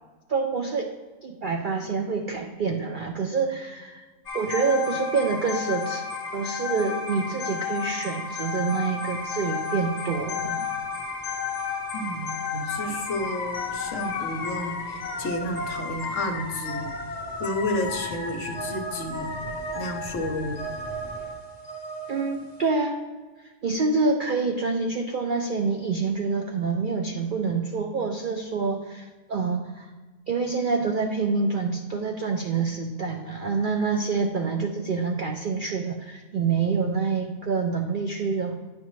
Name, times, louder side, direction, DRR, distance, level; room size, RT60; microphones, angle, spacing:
voice 1, 0.3-0.9 1.2-4.0 4.3-6.0 6.3-10.7 22.1-23.0 23.4-29.9 30.3-38.5, right 4 dB, 65° right, 3 dB, 0.5 m, -27 dB
sound 1, 4.3-22.6, left 4 dB, 35° left, 0.8 m, -33 dB
sound 2, 7.7-21.3, left 1 dB, 10° right, 0.9 m, -47 dB
voice 2, 11.9-16.9 17.4-19.4 19.7-20.7, left 1 dB, 60° left, 4 dB, 1.1 m, -31 dB
10.0 x 5.3 x 3.1 m, 1.3 s
omnidirectional pair, 1.5 m